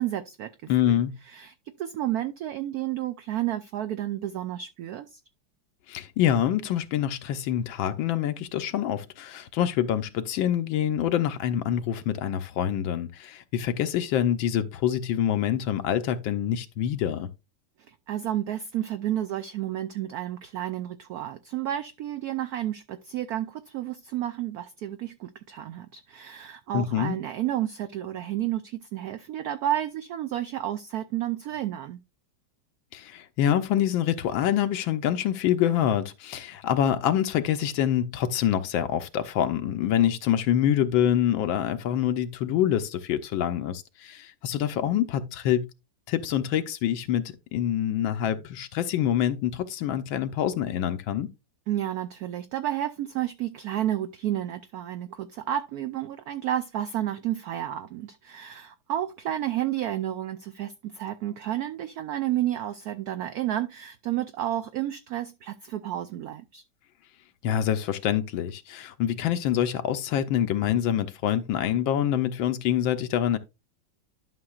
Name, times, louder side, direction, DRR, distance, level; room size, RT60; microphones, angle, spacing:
voice 1, 0.0-0.9 1.3-5.1 17.9-32.0 51.7-66.6, right 12 dB, 80° right, 0.8 m, -31 dB
voice 2, 0.7-1.2 5.9-17.3 26.7-27.2 32.9-45.7 46.1-47.2 47.5-51.3 67.4-73.4, left 10 dB, 80° left, 1.4 m, -26 dB
11.5 x 6.0 x 2.4 m
omnidirectional pair, 2.1 m